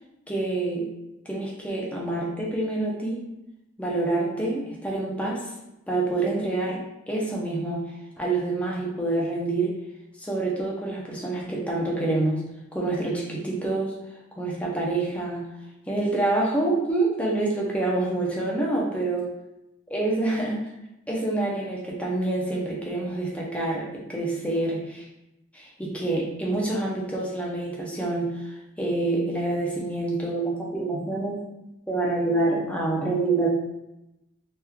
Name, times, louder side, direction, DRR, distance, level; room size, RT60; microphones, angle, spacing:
voice 1, 0.3-0.9 1.3-3.2 3.8-5.4 5.9-6.8 7.1-7.8 8.2-9.8 10.2-12.4 12.7-13.9 14.4-15.5 15.9-19.2 19.9-20.6 21.1-25.0 25.5-31.4 31.9-33.5, right 2 dB, 5° left, -3 dB, 0.6 m, -27 dB
3.5 x 3.0 x 2.3 m, 0.91 s
head